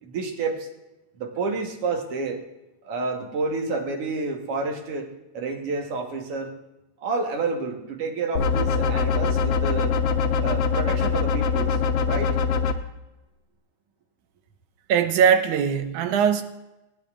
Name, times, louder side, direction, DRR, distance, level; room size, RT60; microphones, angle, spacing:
voice 1, 0.0-0.7 1.2-2.4 2.8-5.1 5.3-6.5 7.0-10.0 10.4-11.8 12.0-12.4, right 3 dB, 60° right, 2 dB, 2.0 m, -29 dB
sound 1, 8.4-12.7, left 5 dB, 75° left, 1.5 m, -23 dB
voice 2, 14.9-16.4, right 7 dB, 85° right, 8 dB, 2.3 m, -20 dB
19.5 x 10.5 x 2.4 m, 1.0 s
omnidirectional pair, 3.4 m